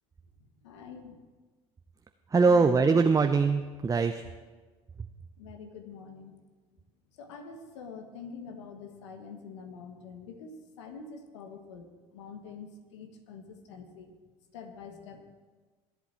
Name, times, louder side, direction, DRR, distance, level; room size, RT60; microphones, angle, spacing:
voice 1, 0.4-1.1 2.4-3.0 5.4-6.3 7.1-14.1 14.5-15.2, left 5 dB, 85° left, 6 dB, 1.5 m, -45 dB
voice 2, 2.3-4.2 5.0-5.1, right 4 dB, 25° right, 7 dB, 0.7 m, -23 dB
21.0 x 8.3 x 4.4 m, 1.3 s
hypercardioid pair, 70°, 15 cm